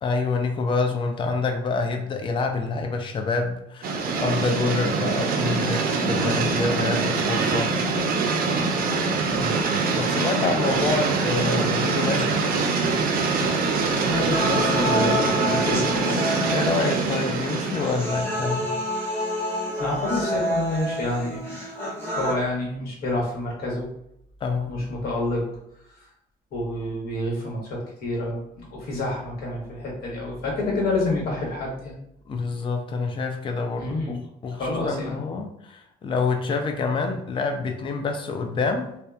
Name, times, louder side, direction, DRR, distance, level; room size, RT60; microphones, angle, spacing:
voice 1, 0.0-7.7 10.0-12.4 16.5-18.7 24.4-24.8 32.3-34.2 34.4-38.9, left 4 dB, 30° left, 4 dB, 0.4 m, -27 dB
sound 1, 3.8-18.3, right 4 dB, 60° right, 0.5 m, -24 dB
voice 2, 9.3-9.6 10.7-10.9 13.7-16.1 19.8-21.6 22.1-23.8 24.7-25.4 25.9-26.1 26.5-31.9 33.8-34.2 34.5-35.2, left 2 dB, 65° left, -3 dB, 1.2 m, -28 dB
sound 2, 14.3-22.3, equal, 15° left, 1.1 m, -28 dB
2.7 x 2.1 x 2.3 m, 0.78 s
cardioid pair, 110°, 17 cm